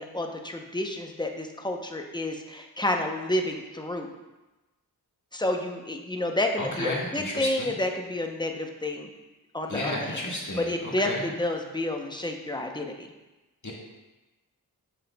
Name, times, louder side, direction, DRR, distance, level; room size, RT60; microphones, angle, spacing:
voice 1, 0.0-4.1 5.3-9.1 9.5-10.2 10.6-13.1, left 1 dB, 10° left, 3 dB, 0.7 m, -30 dB
voice 2, 6.6-7.8 9.7-11.3 13.6-13.7, left 1 dB, 50° left, -3 dB, 1.7 m, -33 dB
8.0 x 6.6 x 2.3 m, 1.1 s
wide cardioid pair, 60°, 39 cm